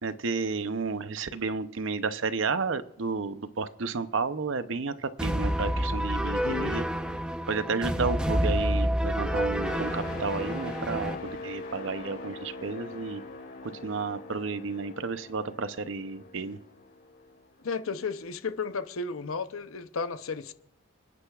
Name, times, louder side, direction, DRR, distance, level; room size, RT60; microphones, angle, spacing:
voice 1, 0.0-6.8 7.5-13.2 13.6-16.6, right 4 dB, 65° right, 0.7 m, -32 dB
sound 1, 5.2-11.1, equal, 5° right, 0.8 m, -28 dB
voice 2, 6.4-6.7 17.6-20.5, left 4 dB, 85° left, 0.7 m, -33 dB
sound 2, 9.6-17.4 17.9-18.1, left 2 dB, 65° left, 2.9 m, -42 dB
29.5 x 9.9 x 2.4 m
head